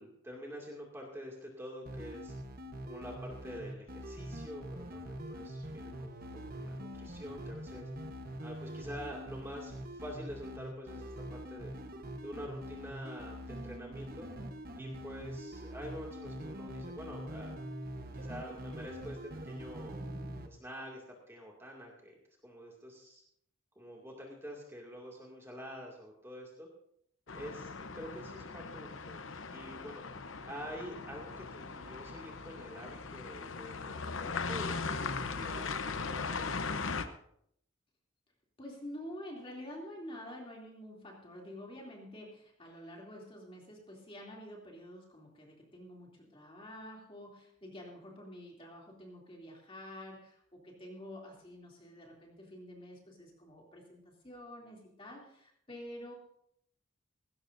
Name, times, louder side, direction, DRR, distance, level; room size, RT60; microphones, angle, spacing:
voice 1, 0.0-2.3 2.8-7.9 8.4-11.7 12.2-14.3 14.8-17.6 18.1-20.0 20.4-22.2 22.4-23.2 23.8-26.7 27.3-29.2 29.5-30.0 30.4-37.1, equal, 10° right, -2 dB, 2.3 m, -47 dB
sound 1, 1.9-20.5, equal, 45° right, 1.1 m, -44 dB
sound 2, 27.3-37.1, left 4 dB, 70° left, 0.8 m, -39 dB
voice 2, 38.6-56.1, left 1 dB, 25° left, -1 dB, 2.9 m, -48 dB
18.5 x 16.5 x 2.7 m, 0.69 s
head